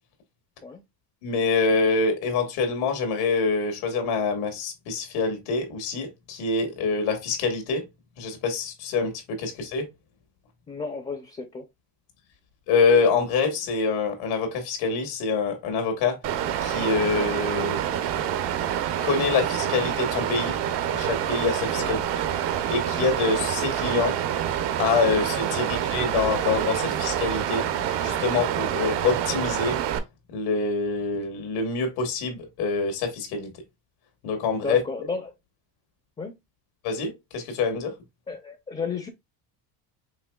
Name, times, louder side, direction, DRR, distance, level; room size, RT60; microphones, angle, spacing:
voice 1, 1.2-7.9 8.2-9.9 12.7-16.2 16.6-17.8 19.0-20.6 20.9-22.0 22.7-24.2 24.8-27.6 28.0-29.8 30.3-33.5 34.2-34.8 36.8-37.9, left 4 dB, 85° left, 1.7 m, -25 dB
voice 2, 10.7-11.7 21.8-22.1 25.6-25.7 34.6-35.3 36.2-36.4 38.3-39.1, left 4 dB, 15° left, 0.5 m, -33 dB
Water, 16.2-30.0, right 10 dB, 60° right, 0.8 m, -27 dB
5.1 x 3.1 x 2.2 m
cardioid pair, 120°, 48 cm